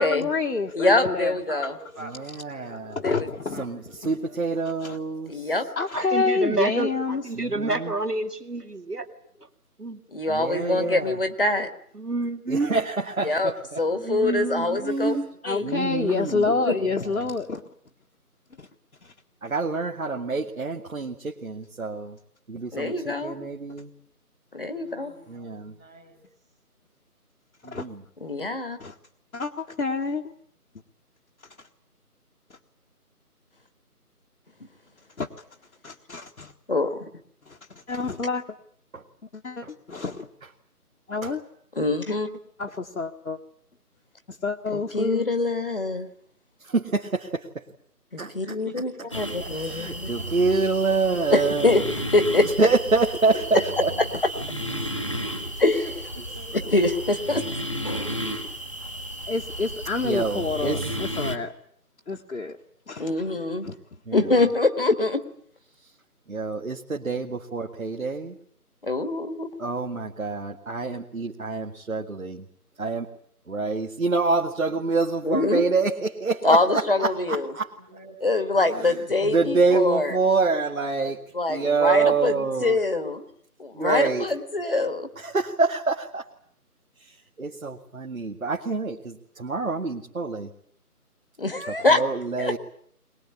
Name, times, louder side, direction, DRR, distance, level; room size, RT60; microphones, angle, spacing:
voice 1, 0.0-1.4 3.0-3.7 4.8-5.0 5.8-7.2 15.4-17.6 18.6-18.7 19.0-19.1 27.7-27.9 28.8-28.9 29.3-30.3 35.2-35.3 35.8-36.5 37.5-37.6 37.9-38.4 39.3-40.3 41.1-41.4 42.6-43.4 44.3-45.3 59.3-61.5 62.1-62.6 62.9-63.1 63.6-63.7, left 4 dB, 65° left, 1 dB, 1.7 m, -28 dB
voice 2, 0.7-1.7 3.0-3.3 5.3-5.7 10.1-11.7 13.2-13.5 13.8-15.2 15.5-15.7 16.4-16.9 22.7-23.4 24.5-25.1 28.2-28.8 36.7-37.1 41.8-42.3 44.7-46.1 48.1-50.1 51.3-51.8 52.1-52.5 53.5-53.6 55.6-55.8 56.7-57.4 63.0-63.7 64.1-65.2 68.8-69.5 75.2-75.6 76.4-77.5 78.2-80.2 81.3-83.2 83.6-85.1 91.4-92.0 92.4-92.6, left 2 dB, 35° left, 9 dB, 1.6 m, -24 dB
voice 3, 1.5-2.1 2.4-3.0 3.5-3.7 4.0-4.4 7.6-7.9 14.2-15.2 24.7-26.2 48.4-49.7 53.3-53.8 54.3-54.6 54.9-55.0 55.8-57.1 77.8-78.2 78.4-79.0, right 1 dB, 5° right, -12 dB, 1.4 m, -45 dB
voice 4, 2.0-2.9 3.6-5.5 7.3-7.9 10.3-11.2 12.5-13.8 15.6-16.5 16.9-17.3 19.4-22.2 22.5-23.9 25.3-25.7 27.6-28.0 38.9-39.0 39.6-39.7 41.2-41.3 46.6-47.6 48.2-48.6 49.5-51.9 52.6-53.9 55.2-55.3 60.0-60.9 64.1-64.2 66.3-68.4 69.6-72.4 72.8-73.1 73.5-77.7 78.7-81.2 81.5-82.8 83.7-84.3 85.2-86.3 87.0-90.5 91.7-92.6, right 4 dB, 60° right, 1 dB, 2.1 m, -26 dB
voice 5, 5.9-9.1 9.8-10.0 10.7-10.9 11.9-12.7 13.9-15.3 16.3-16.4, right 2 dB, 80° right, 6 dB, 3.1 m, -29 dB
sound 1, 49.1-61.4, equal, 20° left, 1.2 m, -33 dB
22.0 x 20.5 x 9.8 m, 0.64 s
figure-of-eight pair, 170°, 46 cm